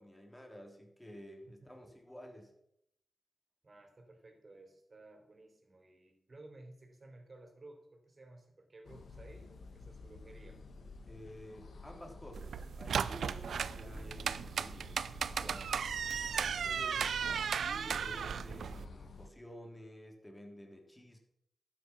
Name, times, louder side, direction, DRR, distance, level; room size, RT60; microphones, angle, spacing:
voice 1, 0.0-2.5 11.1-14.9 15.2-17.1 17.5-21.2, equal, 15° left, 2 dB, 3.3 m, -52 dB
voice 2, 3.6-10.6, right 2 dB, 50° right, 4 dB, 3.6 m, -56 dB
sound 1, 8.8-19.3, left 3 dB, 80° left, 1.6 m, -51 dB
sound 2, 12.3-18.8, right 7 dB, 85° right, 0.5 m, -36 dB
12.5 x 9.2 x 6.0 m, 0.76 s
cardioid pair, 45°, 0 cm